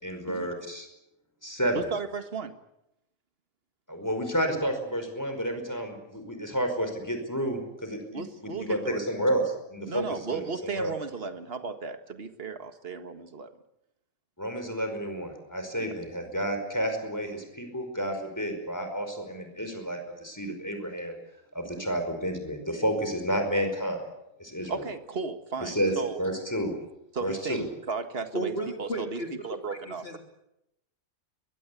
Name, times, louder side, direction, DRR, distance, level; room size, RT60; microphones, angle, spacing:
voice 1, 0.0-0.9 1.4-1.9 3.9-10.9 14.4-21.2 21.5-24.1 24.4-24.8 25.6-26.8 27.2-27.7, equal, 10° left, 6 dB, 5.0 m, -30 dB
voice 2, 1.7-2.6 8.1-9.0 9.9-13.5 15.8-15.9 21.6-21.9 24.7-26.2 27.1-30.2, right 4 dB, 45° right, 8 dB, 1.8 m, -35 dB
voice 3, 28.3-30.2, right 1 dB, 45° left, 3 dB, 3.4 m, -35 dB
22.5 x 22.5 x 8.4 m, 0.86 s
omnidirectional pair, 1.4 m